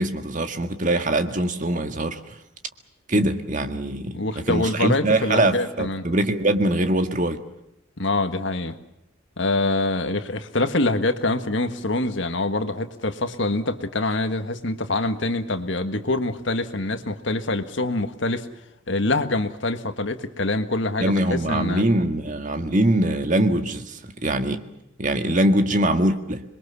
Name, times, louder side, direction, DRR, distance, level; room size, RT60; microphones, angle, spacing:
voice 1, 0.0-2.2 3.1-7.4 21.0-24.6 25.0-26.4, right 1 dB, 40° right, 1.8 m, -22 dB
voice 2, 4.1-6.0 8.0-8.7 9.4-18.5 18.9-21.8, left 2 dB, 60° left, 1.7 m, -25 dB
27.0 x 22.5 x 7.0 m
head